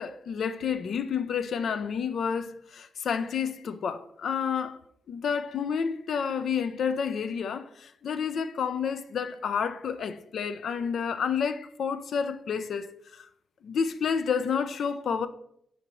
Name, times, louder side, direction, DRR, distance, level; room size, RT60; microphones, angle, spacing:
voice 1, 0.0-4.8 5.1-13.3 13.6-15.3, left 6 dB, 60° left, 0.4 m, -30 dB
10.0 x 4.0 x 3.0 m
wide cardioid pair, 145°, 0 cm